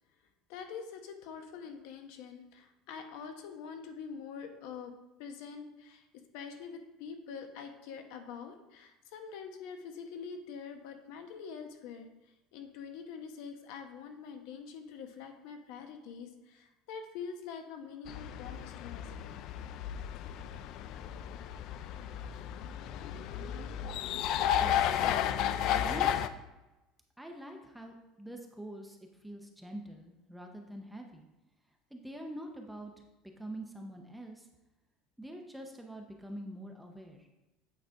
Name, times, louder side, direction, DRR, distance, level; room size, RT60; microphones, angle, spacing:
voice 1, 0.5-4.9 5.2-6.1 6.3-19.3, left 6 dB, 65° left, 6 dB, 0.9 m, -45 dB
sound 1, 18.1-26.3, left 10 dB, 50° left, 0.3 m, -33 dB
voice 2, 24.6-25.2 25.8-26.3 27.2-29.0 29.2-31.3 31.9-32.9 33.4-34.5 35.2-37.3, right 1 dB, 5° right, 2 dB, 0.6 m, -45 dB
8.5 x 3.9 x 4.5 m, 1.0 s
cardioid pair, 160°, 0 cm